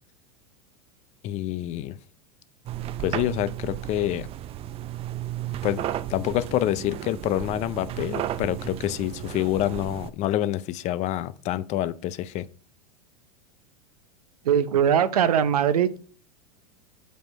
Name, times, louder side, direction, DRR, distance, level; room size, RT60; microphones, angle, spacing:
voice 1, 1.2-2.0 3.0-4.3 5.6-5.8 6.1-12.5, left 13 dB, 35° left, 0.5 m, -27 dB
sound 1, 2.7-10.1, right 12 dB, 30° right, 0.4 m, -34 dB
voice 2, 14.5-16.0, right 8 dB, 75° right, 0.7 m, -21 dB
7.7 x 5.2 x 4.3 m
hypercardioid pair, 95°, 20 cm